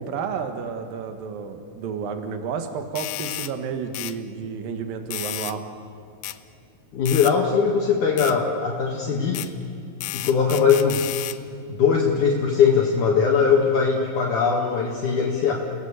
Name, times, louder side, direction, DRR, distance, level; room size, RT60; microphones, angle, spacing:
voice 1, 0.0-5.6, right 6 dB, 75° right, 7 dB, 3.3 m, -31 dB
sound 1, 3.0-3.5 3.9-4.2 5.1-5.6 6.2-6.4 7.1-7.3 8.2-8.4 9.3-9.5 10.0-11.4, left 15 dB, 80° left, 2.4 m, -32 dB
voice 2, 6.9-9.5 10.1-11.2 11.7-15.5, left 6 dB, 60° left, -2 dB, 3.2 m, -20 dB
29.5 x 18.5 x 8.4 m, 2.5 s
omnidirectional pair, 4.2 m